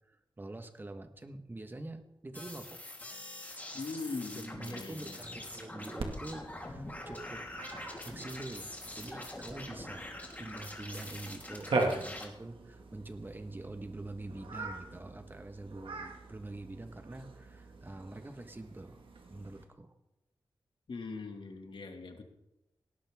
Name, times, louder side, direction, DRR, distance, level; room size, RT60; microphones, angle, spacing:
voice 1, 0.1-2.8 4.3-7.5 8.0-10.1 10.4-19.0 19.3-19.9, right 2 dB, 25° right, 7 dB, 1.5 m, -45 dB
sound 1, 2.3-12.2, left 1 dB, 20° left, 3.5 m, -44 dB
voice 2, 3.7-5.2 20.9-22.2, left 3 dB, 70° left, 4 dB, 2.1 m, -41 dB
Cat, 6.0-19.6, right 3 dB, 85° right, 2.2 m, -41 dB
18.5 x 18.0 x 3.7 m, 0.91 s
wide cardioid pair, 110°, 9 cm